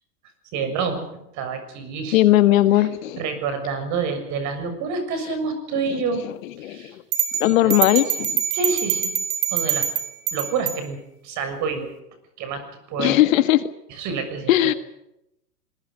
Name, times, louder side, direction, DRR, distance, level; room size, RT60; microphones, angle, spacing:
voice 1, 0.5-1.0 1.3-2.2 3.2-6.2 6.6-7.0 7.6-7.7 8.5-9.2 9.5-9.9 10.3-11.9 12.4-12.6 12.9-13.2 14.0-14.8, right 5 dB, 40° right, 9 dB, 6.8 m, -28 dB
voice 2, 2.1-3.2 6.2-6.3 6.6-7.0 7.4-8.4 13.0-13.7 14.5-14.7, left 14 dB, 55° left, 11 dB, 1.7 m, -18 dB
sound 1, 7.1-10.8, right 9 dB, 65° right, 4.7 m, -24 dB
25.5 x 21.5 x 6.7 m, 0.84 s
hypercardioid pair, 120°, 47 cm